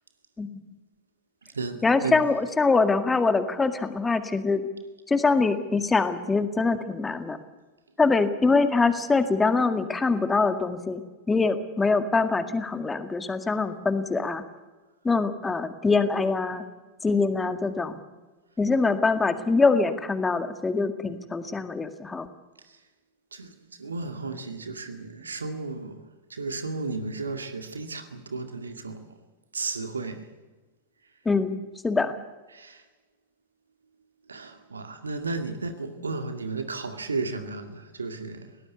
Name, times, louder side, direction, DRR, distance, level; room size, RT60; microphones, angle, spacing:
voice 1, 0.4-0.8 1.8-4.6 5.1-7.4 8.0-11.0 11.3-14.4 15.0-16.6 17.0-18.0 18.6-22.3 31.3-31.6 31.8-32.1, left 4 dB, 10° left, 1.9 m, -24 dB
voice 2, 1.4-2.2 22.6-22.8 23.3-29.2 29.5-30.3 32.5-32.8 34.3-38.6, right 3 dB, 75° right, 2.1 m, -34 dB
22.0 x 18.5 x 8.3 m
figure-of-eight pair, 90°, 0 cm